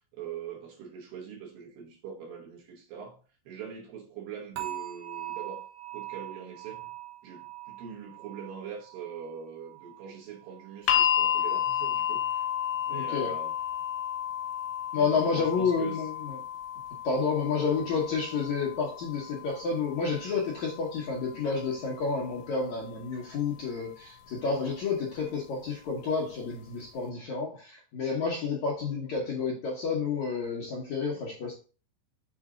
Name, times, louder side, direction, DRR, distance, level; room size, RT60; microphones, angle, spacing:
voice 1, 0.1-3.2 3.5-5.7 5.9-6.8 7.2-12.5 12.9-13.5 14.9-16.1, right 7 dB, 70° right, 2.6 m, -42 dB
sound 1, 4.6-11.6 11.9-12.3 12.8-12.9, right 16 dB, 85° right, 3.2 m, -43 dB
sound 2, 10.9-23.0 24.0-24.1, left 9 dB, 85° left, 2.6 m, -32 dB
voice 2, 12.9-13.3 14.9-16.4 17.0-31.6, left 5 dB, 70° left, 1.8 m, -30 dB
7.0 x 4.0 x 3.7 m
omnidirectional pair, 4.7 m